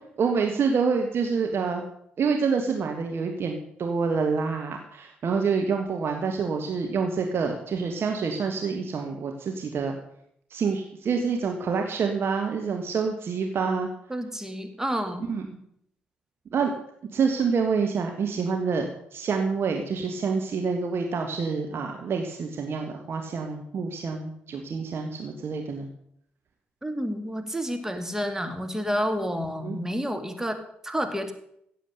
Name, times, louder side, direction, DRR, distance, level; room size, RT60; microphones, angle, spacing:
voice 1, 0.2-1.8 2.2-9.9 10.5-13.9 15.3-15.4 16.5-16.7 17.1-25.9 29.6-29.8, right 5 dB, 50° right, 3 dB, 1.6 m, -27 dB
voice 2, 14.1-15.3 26.8-31.3, equal, 10° right, 7 dB, 2.3 m, -30 dB
15.5 x 7.6 x 6.7 m, 0.72 s
figure-of-eight pair, 40°, 5 cm